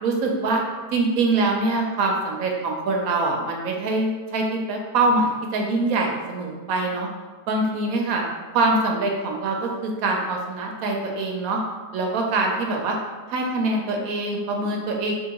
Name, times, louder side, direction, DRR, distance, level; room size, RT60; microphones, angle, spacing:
voice 1, 0.0-0.6 0.9-7.1 7.5-8.2 8.5-11.6 11.9-13.0 13.3-15.1, right 2 dB, 70° right, 1 dB, 0.9 m, -24 dB
3.6 x 2.8 x 2.8 m, 1.4 s
omnidirectional pair, 1.7 m